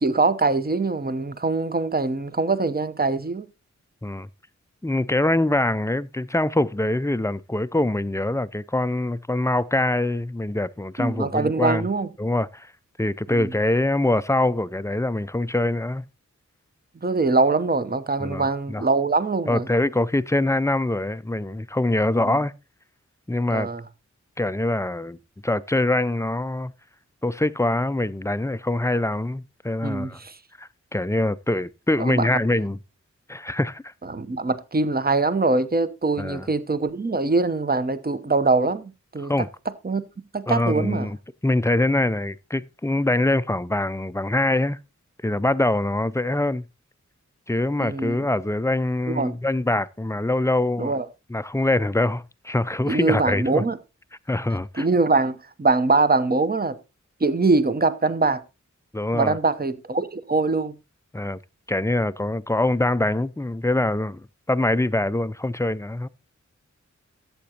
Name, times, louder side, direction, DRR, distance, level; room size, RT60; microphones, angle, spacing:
voice 1, 0.0-3.5 11.0-12.1 13.3-13.5 17.0-19.7 22.2-22.4 23.5-23.8 29.8-30.4 32.0-32.3 34.1-39.3 39.8-40.0 40.3-41.1 47.8-48.3 49.1-49.3 50.8-51.0 52.9-53.8 54.8-56.8 57.2-58.4 59.1-60.8, right 3 dB, 30° right, 0.8 m, -23 dB
voice 2, 4.8-11.9 12.2-12.7 13.0-16.0 18.2-18.8 19.5-22.5 23.3-23.7 24.4-25.2 25.4-26.7 27.2-30.2 30.6-32.8 33.3-33.9 36.2-36.5 39.2-39.5 40.5-41.2 41.4-44.8 45.2-46.6 47.5-50.9 51.3-53.6 54.3-54.9 58.9-59.4 61.1-61.4 61.7-66.1, left 1 dB, 10° left, 0.4 m, -24 dB
13.5 x 7.9 x 2.8 m
wide cardioid pair, 65°, 30 cm